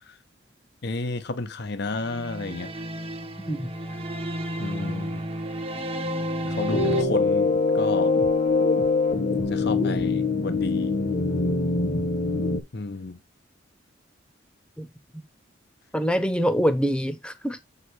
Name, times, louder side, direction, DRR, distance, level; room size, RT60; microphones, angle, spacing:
voice 1, 0.8-2.7 4.6-5.2 6.4-8.1 9.5-10.9 12.7-13.2, left 3 dB, 60° left, 0.8 m, -32 dB
sound 1, 1.9-7.0, equal, 30° right, 0.9 m, -31 dB
sound 2, 6.7-12.6, left 3 dB, 45° left, 1.1 m, -23 dB
voice 2, 15.9-17.6, equal, 5° left, 0.9 m, -24 dB
7.6 x 4.9 x 4.7 m
head